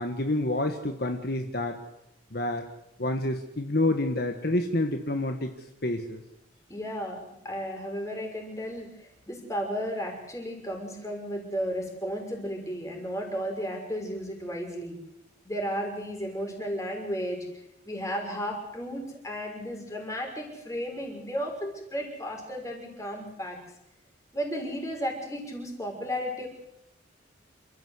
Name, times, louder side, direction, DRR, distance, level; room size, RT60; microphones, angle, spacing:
voice 1, 0.0-1.8 2.3-2.6 3.0-5.5 5.8-6.2, left 1 dB, 55° left, 5 dB, 1.5 m, -28 dB
voice 2, 6.7-15.0 15.4-17.5 17.8-23.6 24.3-26.5, equal, 15° left, 1 dB, 5.9 m, -34 dB
28.5 x 14.5 x 8.2 m, 0.82 s
head